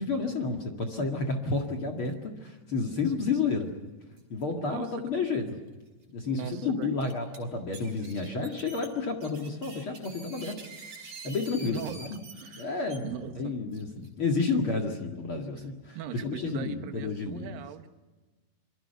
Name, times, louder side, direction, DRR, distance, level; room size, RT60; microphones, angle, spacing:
voice 1, 0.0-3.8 4.3-5.6 6.1-10.6 11.2-12.2 12.5-17.6, left 4 dB, 40° left, 2 dB, 2.1 m, -31 dB
sound 1, 3.0-3.2 3.5-3.6 4.2-4.4 5.3-5.4 5.9-6.0 6.8-7.4 7.7-13.0 13.7-14.1, right 3 dB, 40° right, 5.7 m, -47 dB
voice 2, 4.5-4.9 6.3-7.0 11.7-12.0 12.3-13.6 15.9-17.9, right 9 dB, 65° right, 8 dB, 2.8 m, -40 dB
27.0 x 24.5 x 5.8 m, 1.2 s
omnidirectional pair, 4.8 m